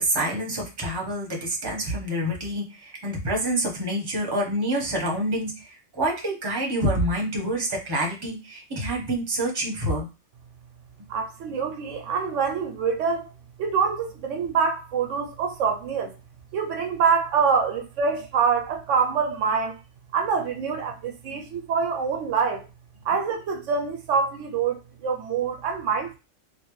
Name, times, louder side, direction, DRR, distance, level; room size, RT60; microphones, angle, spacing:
voice 1, 0.0-10.1, right 1 dB, 20° right, 0.9 m, -27 dB
voice 2, 11.1-13.3 13.6-16.2 16.5-19.8 20.1-22.7 23.0-26.2, right 6 dB, 80° right, 0.9 m, -25 dB
3.3 x 2.7 x 3.0 m
omnidirectional pair, 1.3 m